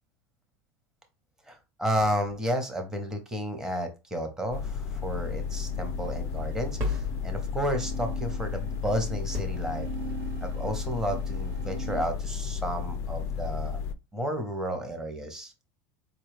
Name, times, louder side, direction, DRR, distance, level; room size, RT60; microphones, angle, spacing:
voice 1, 1.5-9.9 10.4-13.8 14.1-15.5, equal, 5° right, 5 dB, 0.7 m, -32 dB
sound 1, 4.5-13.9, left 6 dB, 40° left, 0.3 m, -33 dB
sound 2, 5.0-12.0, right 8 dB, 50° right, 0.5 m, -44 dB
sound 3, 6.8-8.1 9.3-10.5, left 3 dB, 30° right, 1.0 m, -37 dB
4.5 x 2.3 x 3.2 m, 0.26 s
supercardioid pair, 160°, 8 cm